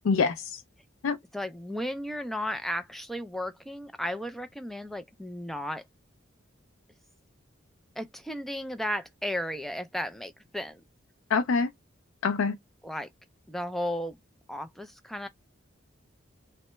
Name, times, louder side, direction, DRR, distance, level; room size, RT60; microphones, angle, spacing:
voice 1, 0.1-0.6 1.0-1.2 11.3-11.7 12.2-12.5, left 5 dB, 80° left, 0.4 m, -25 dB
voice 2, 1.3-5.8 8.0-10.8 12.8-13.1 13.5-14.2 14.5-15.3, equal, ahead, 0.3 m, -34 dB
3.1 x 2.2 x 3.0 m
head